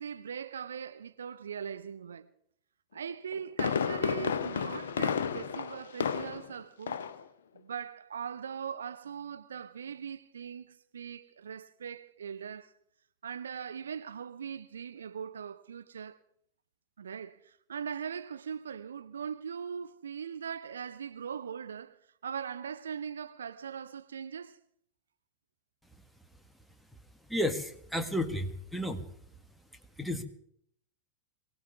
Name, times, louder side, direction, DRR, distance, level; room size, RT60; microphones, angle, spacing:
voice 1, 0.0-2.3 2.9-7.0 7.5-12.7 13.2-16.2 17.0-22.0 22.2-24.6, right 7 dB, 70° right, 0.6 m, -40 dB
Fireworks, 3.1-6.6 6.9-7.2 7.6-7.7, left 7 dB, 65° left, 0.9 m, -32 dB
voice 2, 27.3-29.0 30.0-30.2, left 1 dB, ahead, 1.7 m, -32 dB
23.0 x 17.5 x 3.6 m
figure-of-eight pair, 90°, 0 cm